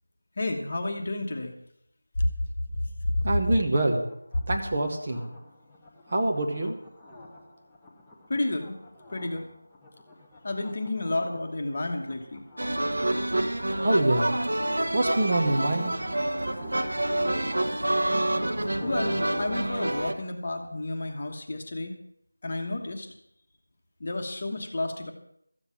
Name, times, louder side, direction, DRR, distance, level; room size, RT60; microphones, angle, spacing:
voice 1, 0.4-1.5 2.2-2.3 8.3-8.7 9.1-9.5 10.4-12.4 18.8-21.9 22.4-23.1 24.0-25.1, left 2 dB, 25° left, 3 dB, 1.3 m, -31 dB
voice 2, 3.2-4.0 4.5-5.3 6.1-6.8 13.8-14.3 14.9-15.9, right 2 dB, 20° right, 3 dB, 1.1 m, -25 dB
sound 1, 4.0-20.1, left 1 dB, 5° left, 0.7 m, -47 dB
sound 2, 12.6-20.1, right 1 dB, 70° right, 1.7 m, -27 dB
14.0 x 7.9 x 8.5 m, 0.71 s
figure-of-eight pair, 180°, 0 cm